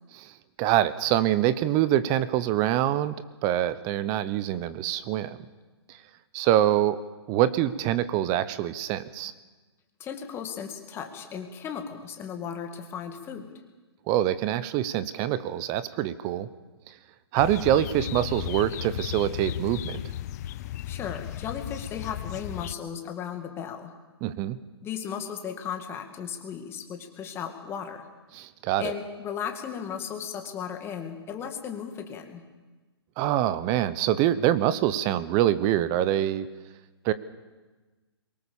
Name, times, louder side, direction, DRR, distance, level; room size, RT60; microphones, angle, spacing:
voice 1, 0.1-3.2 3.4-5.4 5.9-6.0 6.3-7.0 7.3-9.3 14.1-16.5 16.9-17.0 17.3-20.0 24.2-24.6 28.3-28.9 33.2-36.5 37.0-37.1, right 12 dB, 25° right, 15 dB, 0.8 m, -25 dB
voice 2, 10.0-13.5 20.9-23.9 24.8-28.1 28.8-32.4, left 7 dB, 15° left, 5 dB, 2.0 m, -36 dB
sound 1, 17.4-22.7, left 12 dB, 35° left, 0.6 m, -35 dB
23.0 x 19.0 x 7.1 m, 1.2 s
hypercardioid pair, 140°, 14 cm